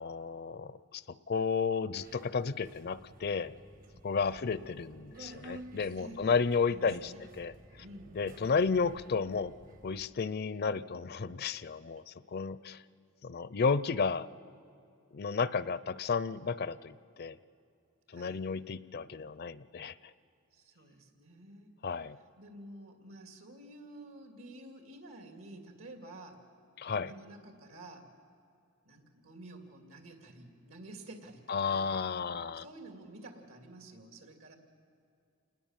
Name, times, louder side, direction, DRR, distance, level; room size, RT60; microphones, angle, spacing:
voice 1, 0.0-3.5 4.0-7.5 8.1-9.5 9.8-12.8 13.2-14.3 15.1-17.4 18.1-19.9 21.8-22.2 26.8-27.1 31.5-32.6, left 5 dB, 50° left, 17 dB, 0.5 m, -32 dB
Subway metro underground, 2.0-10.1, right 1 dB, 40° right, 1.0 m, -53 dB
voice 2, 6.0-6.4 6.7-7.3 7.8-8.6 18.1-18.4 20.5-21.7 22.4-26.5 26.8-28.1 28.8-32.0 32.5-34.6, right 1 dB, 75° right, 5 dB, 2.7 m, -50 dB
27.5 x 20.0 x 7.4 m, 2.5 s
head